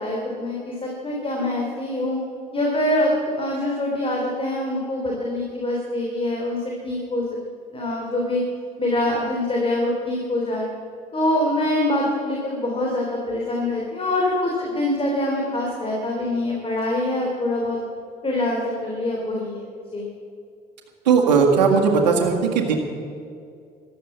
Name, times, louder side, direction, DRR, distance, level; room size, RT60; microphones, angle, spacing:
voice 1, 0.0-2.2 2.5-7.2 7.7-8.4 8.8-10.7 11.1-17.8 18.2-19.7 19.9-20.1, left 1 dB, 25° left, -1 dB, 3.5 m, -24 dB
voice 2, 21.1-22.8, right 5 dB, 85° right, 1 dB, 1.9 m, -17 dB
14.5 x 12.0 x 7.3 m, 2.3 s
hypercardioid pair, 60°, 21 cm